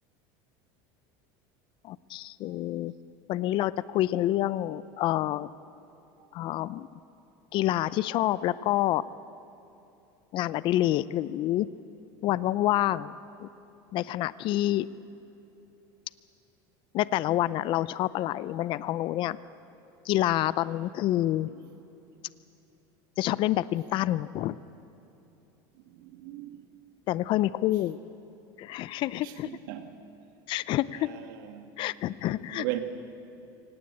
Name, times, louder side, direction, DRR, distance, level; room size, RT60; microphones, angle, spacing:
voice 1, 1.8-2.9 3.3-5.5 6.3-7.0 7.5-9.1 10.3-11.7 12.2-13.1 13.4-13.5 13.9-14.9 16.9-19.4 20.0-21.5 23.2-24.6 27.1-28.0 28.6-29.6 30.5-31.2 31.8-32.7, left 14 dB, 50° left, 0.6 m, -28 dB
voice 2, 25.9-26.7 29.2-29.9 31.4-31.7 32.5-32.8, right 15 dB, 80° right, 1.9 m, -37 dB
24.0 x 18.5 x 8.6 m
supercardioid pair, 125°, 11 cm